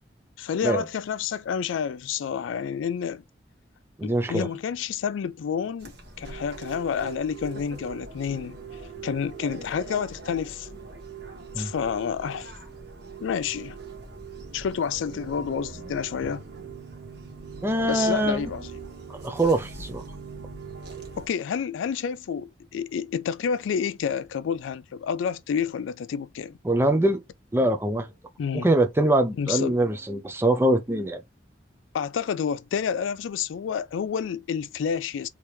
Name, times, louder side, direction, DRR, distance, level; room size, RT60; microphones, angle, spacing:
voice 1, 0.4-3.2 4.0-8.6 9.0-10.7 11.6-12.5 13.2-13.8 14.5-16.4 17.8-18.7 21.2-26.6 28.4-28.7 29.4-29.7 31.9-35.3, left 7 dB, 80° left, 0.3 m, -29 dB
voice 2, 4.0-4.5 11.5-11.7 17.6-18.4 19.1-20.0 26.7-27.2 27.5-28.1 28.5-31.2, right 1 dB, 10° right, 0.5 m, -23 dB
sound 1, 5.8-21.3, equal, 55° right, 1.2 m, -45 dB
sound 2, 6.2-21.2, right 10 dB, 85° right, 0.9 m, -44 dB
3.4 x 2.8 x 3.0 m
head